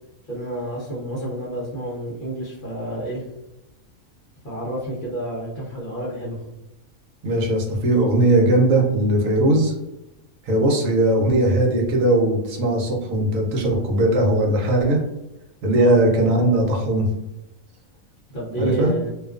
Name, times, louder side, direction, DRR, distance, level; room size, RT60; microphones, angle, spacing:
voice 1, 0.3-3.2 4.4-6.4 15.7-16.0 18.3-19.1, right 1 dB, 50° left, -6 dB, 0.6 m, -29 dB
voice 2, 7.2-9.7 10.4-15.0 15.6-17.1 18.6-18.9, right 1 dB, 75° right, 0 dB, 1.0 m, -19 dB
2.4 x 2.3 x 2.3 m, 0.94 s
omnidirectional pair, 1.5 m